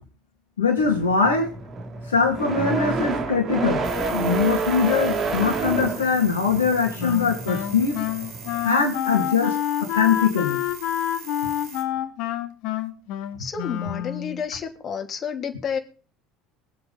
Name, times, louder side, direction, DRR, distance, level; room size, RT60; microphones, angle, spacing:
voice 1, 0.6-1.5 2.1-3.8 4.1-8.0 8.6-10.6, left 5 dB, 85° left, 2.3 m, -22 dB
sound 1, 0.8-8.7, right 4 dB, 40° right, 3.0 m, -29 dB
sound 2, 3.8-11.8, right 4 dB, 70° right, 6.2 m, -42 dB
Wind instrument woodwind instrument, 7.0-14.4, left 11 dB, 60° left, 1.6 m, -28 dB
voice 2, 13.4-15.8, left 6 dB, 40° left, 2.8 m, -30 dB
23.0 x 7.9 x 4.0 m
hypercardioid pair, 70°, 0 cm